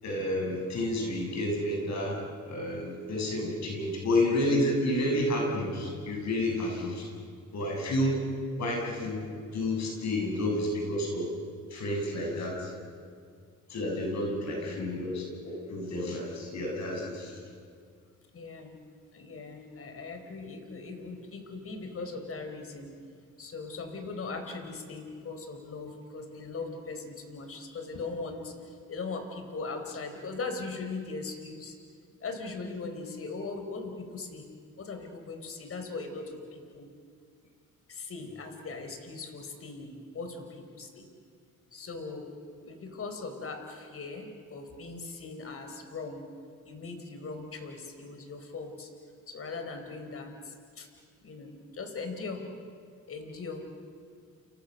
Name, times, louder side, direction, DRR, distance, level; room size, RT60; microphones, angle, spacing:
voice 1, 0.0-7.1 7.5-8.2 8.6-9.3 9.5-11.3 11.7-12.7 13.7-17.4, left 1 dB, 65° left, 0 dB, 7.3 m, -30 dB
voice 2, 14.6-14.9 18.3-18.8 19.1-22.9 23.4-31.8 32.2-34.5 34.8-36.9 37.9-41.1 41.7-42.4 42.6-46.3 46.6-48.9 49.3-50.9 51.2-52.4 53.1-53.7, left 3 dB, 50° left, 6 dB, 4.6 m, -39 dB
29.0 x 29.0 x 6.7 m, 2.2 s
cardioid pair, 90°, 30 cm